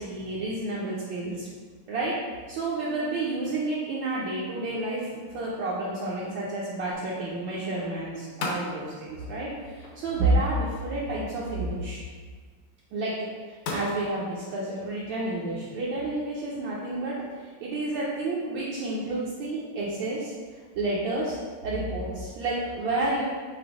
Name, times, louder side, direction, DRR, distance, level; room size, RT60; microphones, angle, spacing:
voice 1, 0.0-1.5 1.9-2.1 2.5-12.0 12.9-13.1 13.5-20.3 20.7-23.2, right 2 dB, 70° right, -7 dB, 1.3 m, -30 dB
sound 1, 4.5-17.2, left 3 dB, 85° left, 1.6 m, -43 dB
sound 2, 6.9-11.8 12.5-12.6, left 2 dB, 65° left, 1.6 m, -51 dB
5.0 x 2.1 x 4.7 m, 1.5 s
omnidirectional pair, 2.3 m